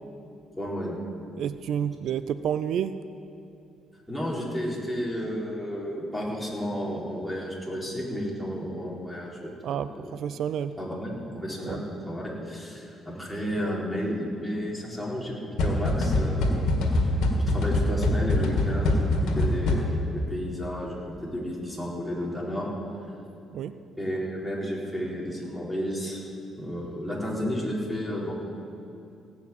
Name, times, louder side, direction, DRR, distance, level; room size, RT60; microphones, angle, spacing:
voice 1, 0.6-1.0 4.1-9.5 10.0-10.1 10.8-16.6 17.3-19.0 19.4-19.9 20.3-22.7 24.0-26.2 26.6-28.3, equal, 5° left, -5 dB, 4.2 m, -32 dB
voice 2, 1.4-3.0 9.6-10.7 11.7-11.8 23.5-23.7, right 9 dB, 70° right, 13 dB, 0.4 m, -30 dB
sound 1, 15.6-20.2, left 1 dB, 80° left, 2.0 m, -24 dB
17.5 x 6.1 x 8.8 m, 2.8 s
cardioid pair, 80°, 0 cm